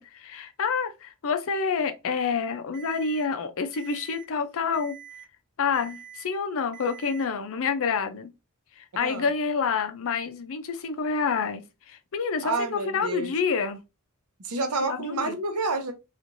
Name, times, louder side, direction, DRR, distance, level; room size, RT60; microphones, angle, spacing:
voice 1, 0.0-5.0 5.6-8.3 8.8-13.8 14.8-15.4, left 5 dB, 65° left, 0.5 m, -28 dB
Alarm, 2.7-3.2 3.7-4.2 4.7-5.2 5.7-6.2 6.7-7.2, right 9 dB, 50° right, 0.8 m, -45 dB
voice 2, 12.4-13.3 14.4-15.9, right 3 dB, 90° right, 0.8 m, -29 dB
3.0 x 2.4 x 2.5 m
head